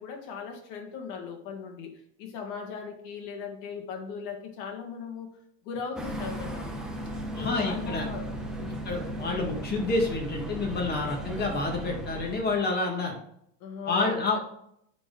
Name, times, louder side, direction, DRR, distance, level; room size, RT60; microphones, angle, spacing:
voice 1, 0.0-1.9 2.2-5.3 5.6-6.7 7.4-8.8 13.6-14.4, left 6 dB, 65° left, 3 dB, 1.9 m, -38 dB
sound 1, 6.0-12.7, right 1 dB, ahead, 0.5 m, -36 dB
voice 2, 7.3-8.1 8.7-13.2 13.9-14.4, left 3 dB, 20° left, 1 dB, 1.6 m, -29 dB
9.4 x 4.3 x 3.7 m, 0.72 s
supercardioid pair, 150°, 50 cm